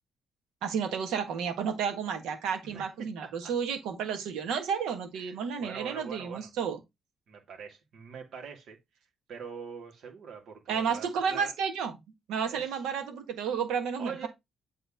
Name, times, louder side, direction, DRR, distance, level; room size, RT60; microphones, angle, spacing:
voice 1, 0.6-6.8 10.7-12.0 12.3-14.3, right 6 dB, 90° right, 1.7 m, -31 dB
voice 2, 2.6-3.5 5.1-6.5 7.3-8.8 9.3-11.5 12.5-12.8 14.0-14.3, right 6 dB, 70° right, 2.5 m, -43 dB
8.2 x 3.6 x 3.8 m
cardioid pair, 90°, 0 cm